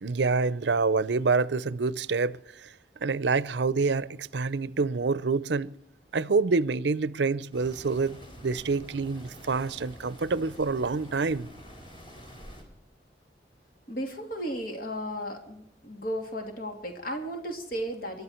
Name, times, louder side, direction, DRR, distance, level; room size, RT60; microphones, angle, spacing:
voice 1, 0.0-2.7 3.0-5.7 6.1-11.5, right 4 dB, 85° right, 0.6 m, -27 dB
sound 1, 7.5-12.6, equal, 30° left, 4.1 m, -47 dB
voice 2, 13.9-18.2, equal, 55° left, 2.8 m, -34 dB
26.5 x 12.0 x 4.4 m
head